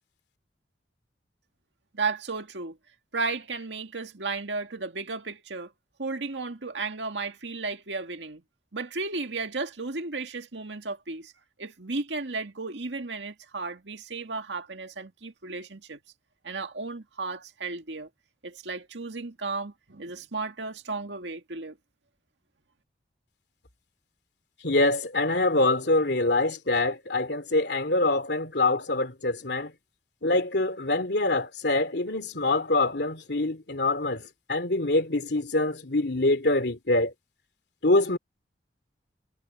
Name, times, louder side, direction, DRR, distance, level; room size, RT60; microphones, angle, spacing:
voice 1, 1.9-2.8 3.1-5.7 6.0-8.4 8.7-11.3 11.6-16.0 16.4-18.1 18.4-21.8, right 3 dB, 90° right, 2.0 m, -34 dB
voice 2, 24.6-29.7 30.2-37.1 37.8-38.2, left 2 dB, 65° left, 3.2 m, -25 dB
head